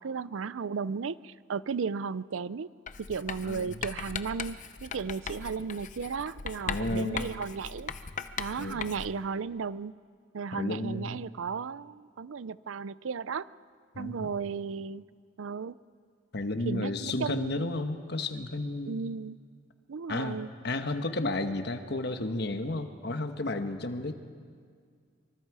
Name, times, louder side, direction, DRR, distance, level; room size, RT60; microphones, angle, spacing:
voice 1, 0.0-2.7 3.0-7.9 8.4-9.9 10.3-13.5 14.0-15.0 15.4-15.7 16.7-17.8 18.9-19.4 19.9-20.5, right 5 dB, 85° right, 18 dB, 0.5 m, -35 dB
Writing, 2.9-9.3, left 6 dB, 40° left, 0.7 m, -39 dB
voice 2, 3.4-3.8 6.7-7.3 8.6-8.8 10.5-11.2 13.9-14.3 16.3-19.0 20.1-24.1, left 2 dB, 55° left, 8 dB, 1.2 m, -32 dB
25.5 x 25.0 x 4.8 m, 2.1 s
head